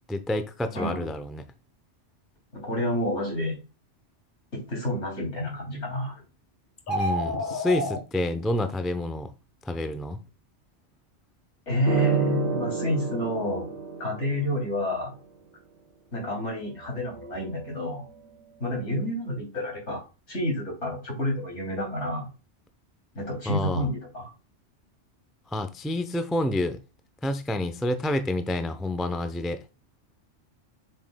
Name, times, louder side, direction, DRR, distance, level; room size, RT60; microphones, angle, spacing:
voice 1, 0.1-1.4 6.9-9.3 9.7-10.2 23.5-23.8 25.5-26.8 27.2-29.6, left 1 dB, ahead, 0.4 m, -28 dB
voice 2, 0.7-1.1 2.5-3.6 4.5-6.2 11.7-13.7 14.0-15.1 16.1-18.0 18.6-20.0 20.3-22.3 23.1-24.3, equal, 75° left, 3.5 m, -29 dB
sound 1, 6.8-8.0, equal, 45° left, 1.4 m, -28 dB
sound 2, 11.9-14.9 16.7-18.4, right 5 dB, 85° right, 1.4 m, -32 dB
7.5 x 5.8 x 2.2 m
omnidirectional pair, 1.2 m